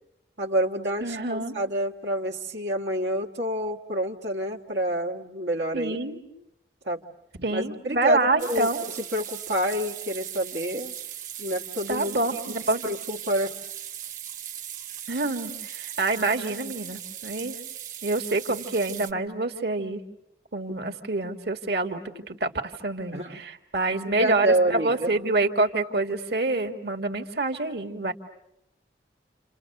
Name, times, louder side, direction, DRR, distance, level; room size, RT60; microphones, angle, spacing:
voice 1, 0.4-6.0 6.8-7.0 7.5-10.9 11.4-12.2 12.5-12.6 12.8-13.5 23.1-23.4 24.0-25.1, right 1 dB, 85° right, -1 dB, 1.7 m, -28 dB
voice 2, 1.0-1.5 5.7-6.2 7.4-8.8 11.9-12.8 15.1-17.6 18.0-20.0 20.5-22.5 22.8-28.1, right 2 dB, 65° right, 3 dB, 1.8 m, -27 dB
sound 1, 8.4-19.1, right 10 dB, 45° right, 1.2 m, -38 dB
30.0 x 28.0 x 6.7 m, 0.83 s
head